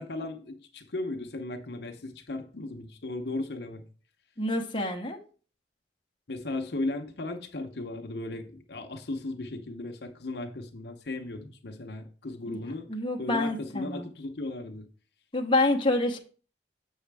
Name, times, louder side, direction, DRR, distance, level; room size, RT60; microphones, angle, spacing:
voice 1, 0.0-3.8 6.3-12.9 13.2-14.8, left 2 dB, 65° left, 0.8 m, -36 dB
voice 2, 4.4-5.2 12.5-12.6 12.9-14.1 15.3-16.2, left 2 dB, 30° left, 0.9 m, -27 dB
7.3 x 6.4 x 3.4 m
head